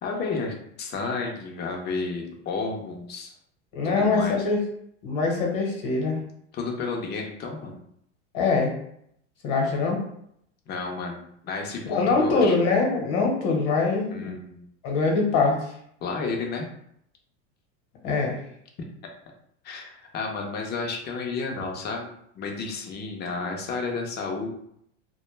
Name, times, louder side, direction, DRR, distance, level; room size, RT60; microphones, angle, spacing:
voice 1, 0.0-3.3 3.8-4.4 6.5-7.8 10.7-12.6 14.1-14.6 16.0-16.7 19.6-22.1 22.4-24.5, left 4 dB, 30° left, 1 dB, 0.5 m, -32 dB
voice 2, 3.7-4.6 5.0-6.2 8.3-8.7 9.4-10.0 11.9-14.3 14.8-15.6 18.0-18.4, left 4 dB, 60° left, 0 dB, 1.0 m, -23 dB
2.2 x 2.0 x 3.1 m, 0.71 s
hypercardioid pair, 110°, 37 cm